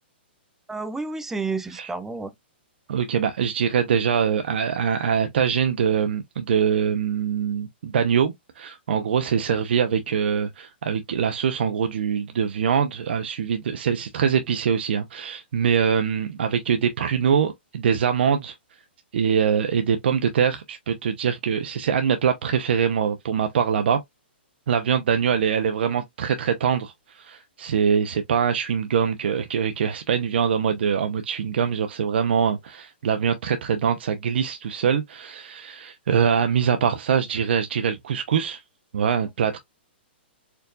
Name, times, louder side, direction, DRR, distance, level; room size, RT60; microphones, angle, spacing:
voice 1, 0.7-2.3, right 3 dB, 5° right, 0.3 m, -30 dB
voice 2, 2.9-18.6 19.1-24.0 24.7-38.6 38.9-39.6, right 7 dB, 70° right, 0.6 m, -23 dB
4.5 x 2.6 x 2.3 m
hypercardioid pair, 145°, 6 cm